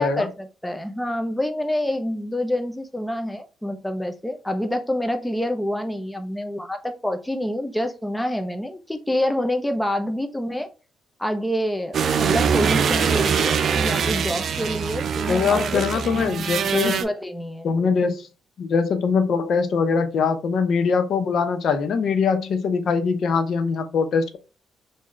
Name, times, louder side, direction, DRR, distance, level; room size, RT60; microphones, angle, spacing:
voice 1, 0.0-10.7 11.2-16.0 16.8-17.7, left 1 dB, 10° left, 0.6 m, -27 dB
sound 1, 11.9-17.0, right 6 dB, 60° right, 0.5 m, -23 dB
voice 2, 15.3-17.0 17.6-18.2 18.6-24.4, left 5 dB, 65° left, 0.5 m, -22 dB
3.6 x 2.6 x 3.1 m
cardioid pair, 90°, 0 cm